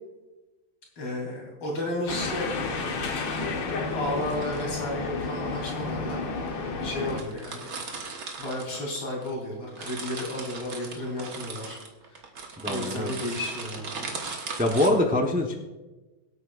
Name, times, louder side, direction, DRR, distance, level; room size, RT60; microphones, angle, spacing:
voice 1, 1.0-2.5 3.9-6.5 6.8-7.7 8.4-11.8 12.1-12.3 12.7-14.2, left 1 dB, 80° left, -3 dB, 4.3 m, -33 dB
sound 1, 2.0-2.3 4.1-4.8 5.6-5.7 6.5-6.6 6.8-6.9 7.1-9.3 9.6-14.9, right 4 dB, 50° right, 1.7 m, -38 dB
sound 2, 2.1-7.2, left 3 dB, 65° left, 1.8 m, -31 dB
voice 2, 12.6-13.2 14.6-15.6, left 1 dB, 10° right, 1 dB, 0.4 m, -24 dB
23.5 x 8.5 x 2.5 m, 1.1 s
omnidirectional pair, 2.2 m